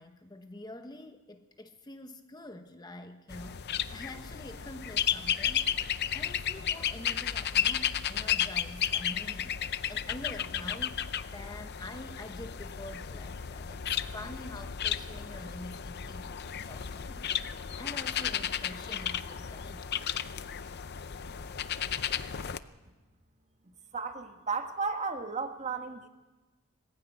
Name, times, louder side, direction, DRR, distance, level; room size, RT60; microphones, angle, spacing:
voice 1, 0.0-19.8 20.5-20.6, left 1 dB, 20° left, 7 dB, 0.9 m, -46 dB
sound 1, 3.3-22.6, left 9 dB, 50° left, 0.6 m, -33 dB
voice 2, 23.9-26.1, right 4 dB, 30° right, 6 dB, 1.6 m, -34 dB
20.5 x 15.5 x 9.4 m, 1.2 s
head